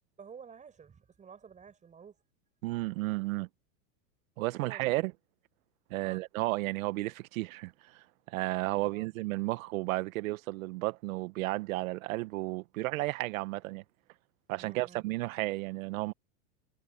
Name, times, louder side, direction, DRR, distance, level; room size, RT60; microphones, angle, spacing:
voice 1, 0.2-2.2 4.6-4.9 6.0-6.2 8.8-9.1 14.6-15.1, right 6 dB, 15° right, 6.3 m, -51 dB
voice 2, 2.6-3.5 4.4-5.1 5.9-13.8 14.5-16.1, right 20 dB, 60° right, 1.2 m, -33 dB
supercardioid pair, 155°, 46 cm